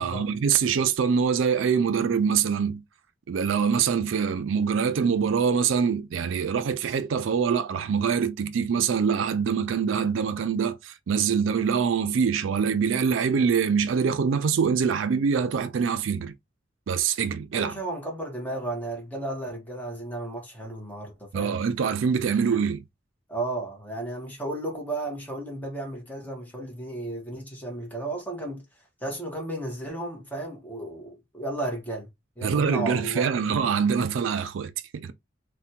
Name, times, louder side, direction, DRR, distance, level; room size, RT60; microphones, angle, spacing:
voice 1, 0.0-2.8 3.3-16.3 16.9-17.8 21.3-22.8 32.4-35.1, right 6 dB, 85° right, 0.4 m, -24 dB
voice 2, 17.5-21.6 22.3-22.5 23.3-28.6 29.0-32.1 32.4-33.4, right 2 dB, 10° left, 0.9 m, -34 dB
3.3 x 2.2 x 2.8 m
head